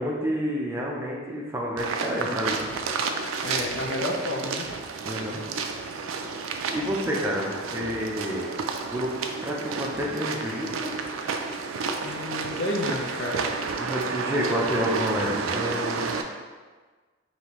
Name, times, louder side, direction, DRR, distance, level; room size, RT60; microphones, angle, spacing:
voice 1, 0.0-2.6 5.0-5.4 6.7-8.5 8.9-9.1 9.4-11.0 13.8-16.1, equal, 10° right, -3 dB, 0.5 m, -29 dB
sound 1, 1.8-16.2, right 4 dB, 90° right, 0.4 m, -31 dB
voice 2, 3.4-4.7 12.0-13.4, left 1 dB, 60° left, 1 dB, 0.6 m, -31 dB
5.1 x 2.7 x 3.0 m, 1.4 s
head